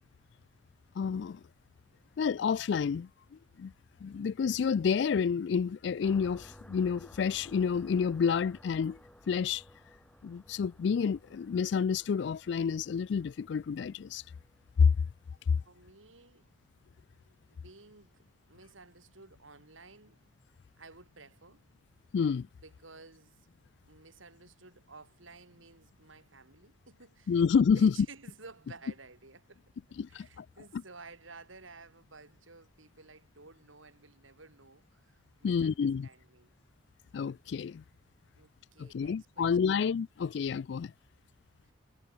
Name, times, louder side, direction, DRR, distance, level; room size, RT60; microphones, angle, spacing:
voice 1, 1.0-1.4 2.2-3.7 4.0-9.0 9.3-9.6 10.2-14.2 14.8-14.9 15.5-15.6 22.1-22.5 27.3-27.9 30.0-30.5 30.7-30.8 35.4-36.1 37.1-37.8 38.8-40.9, left 6 dB, 65° left, 0.3 m, -29 dB
sound 1, 6.0-15.6, equal, 5° left, 3.3 m, -57 dB
voice 2, 15.6-16.5 17.5-20.2 20.8-21.6 22.6-23.5 23.8-27.4 27.7-29.6 30.1-36.5 38.3-39.8 41.6-41.7, right 3 dB, 90° right, 4.4 m, -54 dB
head